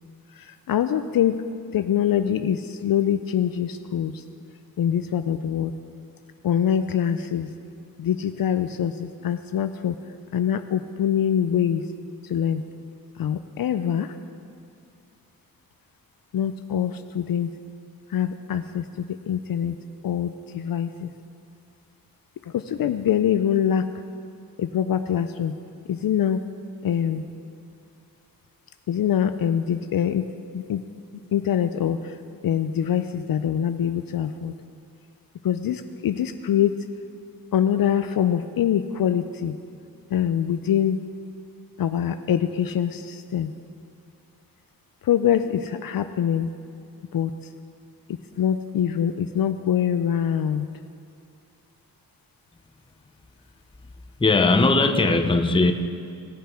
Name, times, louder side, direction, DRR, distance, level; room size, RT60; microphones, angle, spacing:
voice 1, 0.7-1.4 1.7-4.2 4.8-5.7 6.4-7.5 8.0-10.0 10.3-11.8 12.3-12.6 13.2-14.1 16.3-17.5 18.1-19.8 20.0-21.1 22.5-23.9 24.6-25.5 25.9-26.4 26.8-27.2 28.9-30.2 30.5-30.8 31.3-32.1 32.4-34.5 35.4-36.8 37.5-39.5 40.1-41.0 41.8-43.5 45.0-46.5 47.1-47.3 48.4-50.7, left 9 dB, 65° left, 9 dB, 0.5 m, -24 dB
voice 2, 54.2-55.7, left 3 dB, 15° left, 7 dB, 0.6 m, -19 dB
17.5 x 7.0 x 4.4 m, 2.5 s
wide cardioid pair, 105°, 37 cm